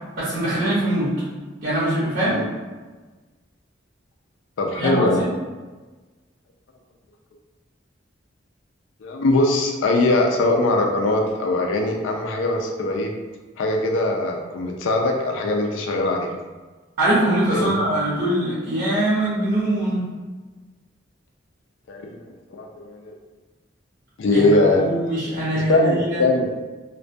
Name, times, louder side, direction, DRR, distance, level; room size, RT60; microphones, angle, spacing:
voice 1, 0.2-1.1 1.6-2.4 4.7-5.2 17.0-20.0 24.3-24.5 24.8-26.2, right 1 dB, 75° right, -10 dB, 0.8 m, -22 dB
voice 2, 4.6-5.3 9.0-13.1 13.6-16.3 17.5-17.8 21.9-22.2 22.5-23.1 24.2-24.8 25.5-26.5, left 2 dB, 85° left, 1 dB, 0.3 m, -21 dB
2.2 x 2.2 x 2.5 m, 1.3 s
head